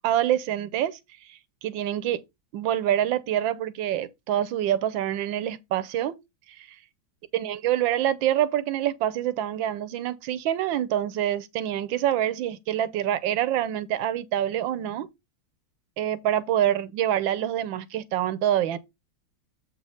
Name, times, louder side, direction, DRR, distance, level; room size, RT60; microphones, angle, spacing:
voice 1, 0.0-1.0 1.3-2.2 2.5-6.2 6.5-6.8 7.3-15.1 16.0-18.8, right 11 dB, 80° right, 1.4 m, -26 dB
7.5 x 4.2 x 5.2 m
omnidirectional pair, 2.2 m